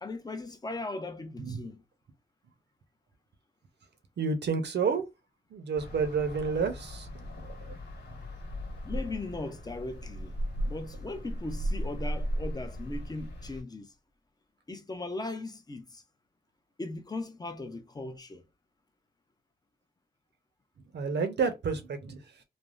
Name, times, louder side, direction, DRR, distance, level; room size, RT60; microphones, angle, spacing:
voice 1, 0.0-1.8 8.8-13.9 14.7-16.0 16.8-18.4, left 2 dB, 20° left, 0.5 m, -38 dB
voice 2, 4.2-5.1 5.5-7.1 7.3-7.8 20.9-22.2, right 5 dB, 75° right, 0.6 m, -30 dB
sound 1, 5.7-13.6, equal, 80° left, 1.3 m, -36 dB
3.3 x 2.0 x 2.4 m
wide cardioid pair, 100°, 18 cm